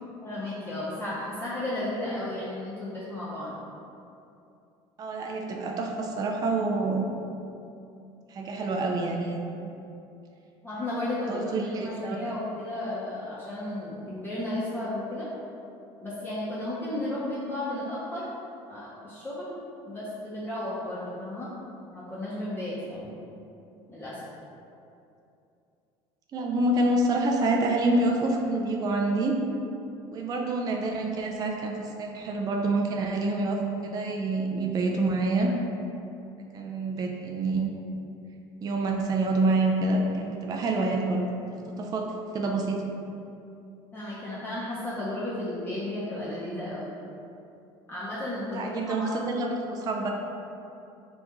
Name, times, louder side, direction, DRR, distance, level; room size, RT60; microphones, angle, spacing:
voice 1, 0.2-3.5 10.6-15.3 16.0-18.2 18.7-19.6 19.8-21.5 21.9-23.1 23.9-24.2 43.9-46.9 47.9-49.1, left 1 dB, 15° left, -10 dB, 0.7 m, -33 dB
voice 2, 5.0-7.1 8.3-9.7 11.3-12.2 26.3-29.4 30.1-35.5 36.5-37.8 38.6-41.2 41.7-42.8 48.5-50.1, right 2 dB, 30° right, 1 dB, 0.3 m, -27 dB
2.9 x 2.5 x 3.5 m, 2.7 s
supercardioid pair, 95°, 13 cm